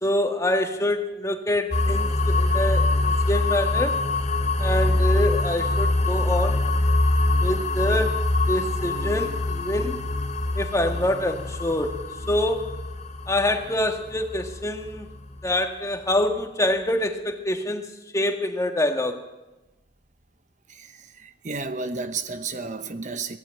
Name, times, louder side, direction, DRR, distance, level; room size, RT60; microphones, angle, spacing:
voice 1, 0.0-4.0 4.6-6.6 7.4-8.2 8.5-10.0 10.6-11.9 12.3-12.7 13.3-15.1 15.4-17.9 18.1-19.3, left 1 dB, 15° left, 1.7 m, -25 dB
sound 1, 1.7-15.5, left 2 dB, 40° left, 3.1 m, -24 dB
voice 2, 20.7-23.4, right 4 dB, 40° right, 1.0 m, -32 dB
23.5 x 17.5 x 9.1 m
head